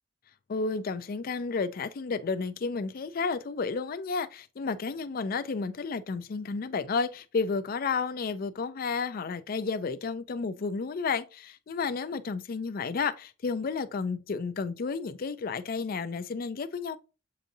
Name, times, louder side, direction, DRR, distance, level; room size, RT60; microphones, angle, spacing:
voice 1, 0.5-17.0, left 4 dB, 45° left, 0.4 m, -32 dB
7.5 x 2.6 x 2.7 m
head